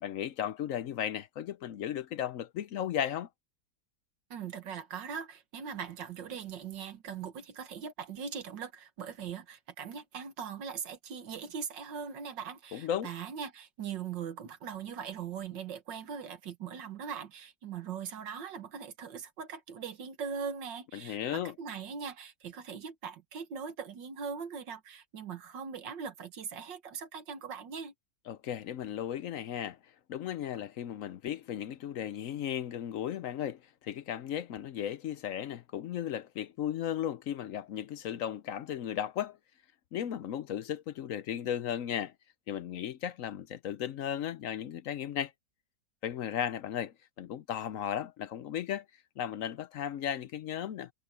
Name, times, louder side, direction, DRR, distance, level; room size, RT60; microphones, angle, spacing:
voice 1, 0.0-3.3 12.7-13.1 20.9-21.5 28.3-29.8 30.1-39.4 39.9-42.1 42.5-45.3 46.0-48.9 49.2-50.9, left 10 dB, 65° left, 0.8 m, -35 dB
voice 2, 4.3-27.9, right 7 dB, 80° right, 2.1 m, -40 dB
omnidirectional pair, 1.9 m